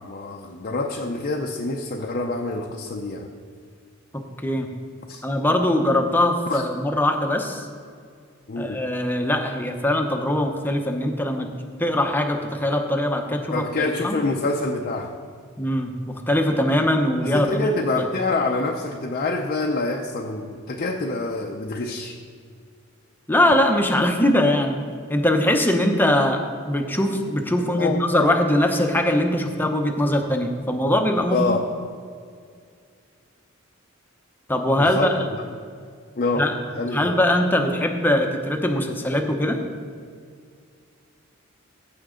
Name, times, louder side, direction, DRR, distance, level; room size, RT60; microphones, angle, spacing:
voice 1, 0.0-3.3 5.1-5.2 6.5-6.6 8.5-8.8 13.5-15.1 17.2-22.2 27.8-28.0 31.3-31.6 34.8-35.1 36.2-37.1, left 2 dB, 45° left, 0 dB, 0.6 m, -26 dB
voice 2, 4.1-4.7 5.2-7.7 8.6-11.5 11.8-14.2 15.6-17.7 18.0-18.1 23.3-24.8 25.1-31.5 34.5-35.2 36.4-36.5 36.9-39.6, left 1 dB, 10° left, 4 dB, 0.8 m, -21 dB
15.5 x 6.0 x 3.8 m, 2.2 s
head